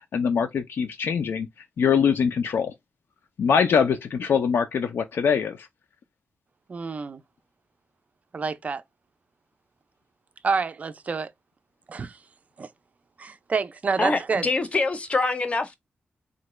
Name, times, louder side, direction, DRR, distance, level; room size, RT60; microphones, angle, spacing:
voice 1, 0.1-1.5 1.8-2.7 3.4-5.7, left 6 dB, 80° left, 0.4 m, -23 dB
voice 2, 6.7-7.2 8.3-8.8 10.4-11.3 11.9-12.2 12.6-12.7 13.2-14.5, right 4 dB, 40° right, 0.3 m, -28 dB
voice 3, 14.0-15.8, left 3 dB, 35° left, 0.6 m, -25 dB
3.7 x 2.1 x 3.0 m
wide cardioid pair, 145°, 4 cm